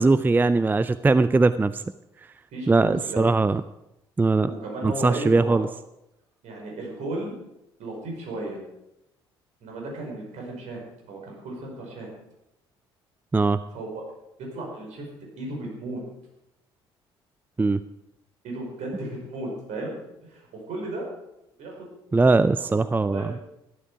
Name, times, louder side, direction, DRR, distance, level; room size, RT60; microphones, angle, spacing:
voice 1, 0.0-1.8 2.7-3.6 4.2-4.5 4.8-5.7 13.3-13.6 17.6-17.8 22.1-23.3, right 3 dB, 15° right, 14 dB, 0.4 m, -20 dB
voice 2, 2.5-3.2 4.5-5.7 6.4-7.4 7.8-8.6 9.6-10.8 11.1-12.1 13.7-14.0 14.4-15.1 15.4-16.0 18.4-19.9 20.2-21.1 21.6-21.8 22.6-22.7 23.0-23.4, right 2 dB, 55° right, -1 dB, 5.3 m, -34 dB
14.0 x 12.5 x 4.9 m, 0.86 s
figure-of-eight pair, 50°, 14 cm